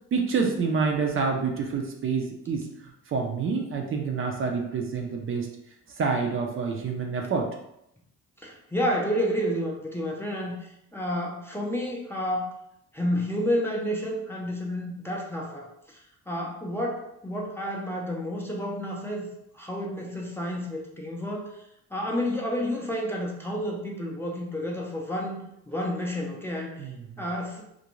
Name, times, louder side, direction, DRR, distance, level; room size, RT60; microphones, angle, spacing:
voice 1, 0.1-5.5 5.9-7.5 26.8-27.3, right 5 dB, 45° right, 2 dB, 0.5 m, -28 dB
voice 2, 8.4-12.5 12.9-19.3 19.5-21.6 21.9-26.9 27.2-27.6, equal, 10° left, -2 dB, 0.5 m, -30 dB
2.5 x 2.1 x 3.0 m, 0.79 s
cardioid pair, 90°, 30 cm